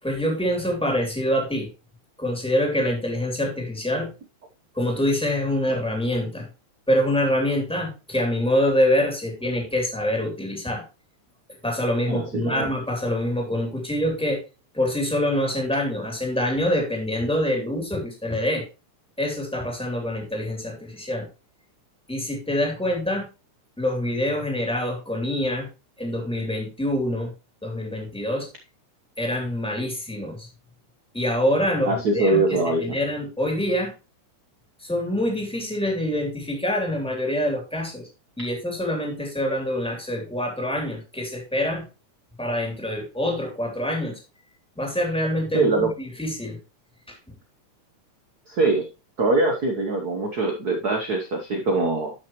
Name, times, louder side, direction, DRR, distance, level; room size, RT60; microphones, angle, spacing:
voice 1, 0.0-1.7 2.2-4.1 4.7-6.5 6.9-10.8 11.6-14.4 14.7-18.6 19.2-21.3 22.1-23.3 23.8-25.7 26.0-27.3 27.6-28.5 29.2-30.5 31.1-33.9 34.8-38.0 38.4-41.8 42.4-44.2 44.8-46.6, left 1 dB, ahead, 1 dB, 2.4 m, -25 dB
voice 2, 12.1-12.7 31.8-33.0 45.5-45.9 48.5-48.9 49.2-52.1, right 2 dB, 85° right, 3 dB, 0.8 m, -23 dB
11.5 x 6.0 x 3.1 m, 0.30 s
omnidirectional pair, 3.5 m